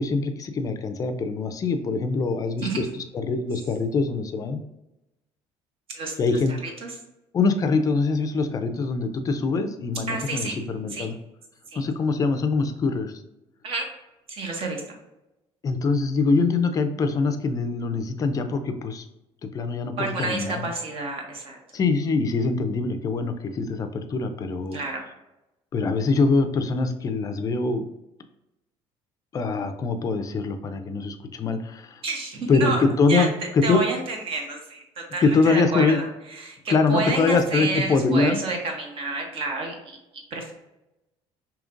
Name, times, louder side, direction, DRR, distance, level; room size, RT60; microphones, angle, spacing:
voice 1, 0.0-4.6 6.2-6.6 7.3-11.1 11.8-13.2 15.6-19.0 19.5-20.7 21.7-24.8 25.7-27.9 29.3-32.0 32.5-33.8 35.2-36.0 36.7-38.4, left 4 dB, 30° left, 7 dB, 0.4 m, -24 dB
voice 2, 10.1-10.6 10.9-11.1 11.7-11.8 13.6-13.9 14.3-14.8 20.0-21.6 24.7-25.0 32.0-32.8 33.1-33.3 33.6-34.8 35.1-40.0 40.3-40.5, right 3 dB, 50° right, 2 dB, 1.0 m, -29 dB
5.0 x 2.8 x 2.5 m, 0.94 s
cardioid pair, 135°, 12 cm